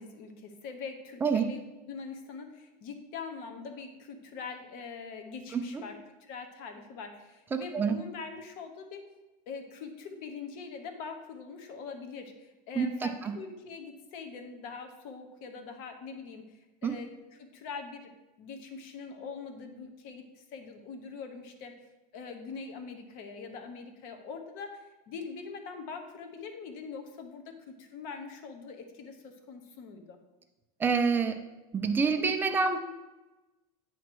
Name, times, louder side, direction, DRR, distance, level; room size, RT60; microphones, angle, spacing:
voice 1, 0.0-9.1 9.5-17.1 17.4-21.8 22.1-30.2, left 5 dB, 45° left, 6 dB, 1.0 m, -43 dB
voice 2, 7.5-8.0 12.7-13.3 16.8-16.9 30.8-31.4 31.7-32.8, right 5 dB, 10° right, 5 dB, 0.4 m, -27 dB
9.3 x 3.1 x 6.0 m, 1.1 s
supercardioid pair, 165°, 19 cm